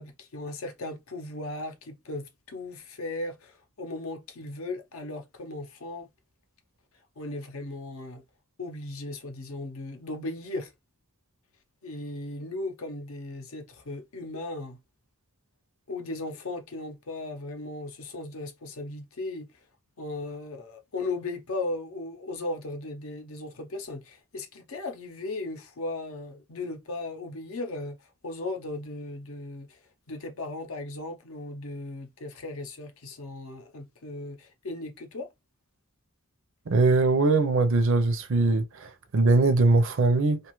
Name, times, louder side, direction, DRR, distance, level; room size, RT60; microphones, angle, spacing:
voice 1, 0.0-6.1 7.2-8.2 8.6-10.7 11.8-14.8 15.9-19.5 20.0-28.0 28.2-29.8 30.1-35.3, left 2 dB, 70° left, 0.6 m, -37 dB
voice 2, 36.7-38.6 39.1-40.4, right 3 dB, 60° right, 0.5 m, -21 dB
2.6 x 2.3 x 3.0 m
head